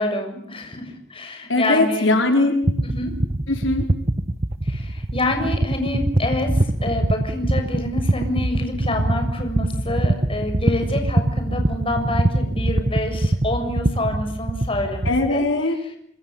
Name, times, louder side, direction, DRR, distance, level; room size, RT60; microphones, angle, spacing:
voice 1, 0.0-2.1 2.8-3.2 4.6-15.5 15.8-15.9, left 1 dB, 30° left, 5 dB, 6.9 m, -27 dB
voice 2, 1.5-2.6 3.5-3.9 15.1-15.8, left 2 dB, 75° left, 5 dB, 4.6 m, -20 dB
sound 1, 2.6-15.3, right 1 dB, 35° right, 1.3 m, -23 dB
27.5 x 26.5 x 7.1 m, 0.67 s
head